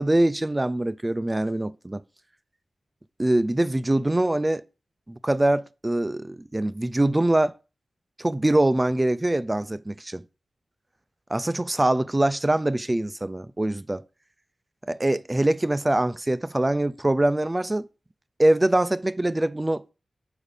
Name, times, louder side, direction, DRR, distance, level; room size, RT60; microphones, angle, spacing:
voice 1, 0.0-2.0 3.2-4.6 5.1-7.5 8.2-10.2 11.3-14.0 14.9-17.9 18.4-19.8, right 1 dB, 15° right, 0.3 m, -23 dB
6.6 x 4.9 x 5.3 m
wide cardioid pair, 130°, 0 cm